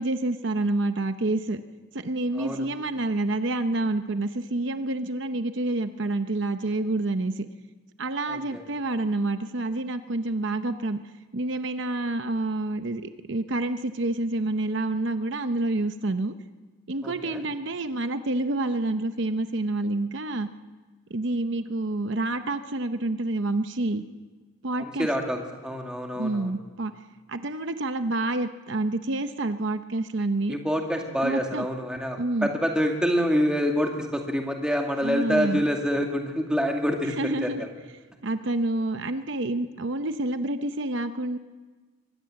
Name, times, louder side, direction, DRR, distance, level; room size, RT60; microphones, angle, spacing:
voice 1, 0.0-1.6 1.9-7.5 8.0-11.0 11.3-16.3 16.9-20.5 21.1-24.0 24.6-25.1 26.1-26.9 27.3-30.6 31.2-31.7 32.2-32.5 35.0-35.6 37.1-37.7 38.2-41.4, right 2 dB, 60° right, 9 dB, 0.8 m, -28 dB
voice 2, 8.3-8.6 17.0-17.4 24.8-26.5 30.5-37.1 37.4-37.7, equal, 5° right, 1 dB, 2.2 m, -26 dB
24.0 x 19.0 x 7.7 m, 1.3 s
head